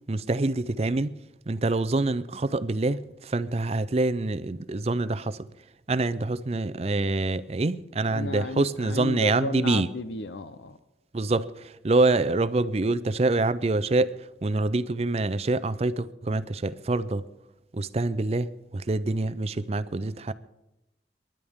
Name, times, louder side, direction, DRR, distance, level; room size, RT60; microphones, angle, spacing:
voice 1, 0.1-1.1 1.5-5.5 5.9-9.9 11.1-17.2 17.7-20.3, right 2 dB, 35° right, 0.5 m, -26 dB
voice 2, 8.1-10.8, left 3 dB, 90° left, 0.7 m, -33 dB
29.0 x 11.5 x 3.6 m
head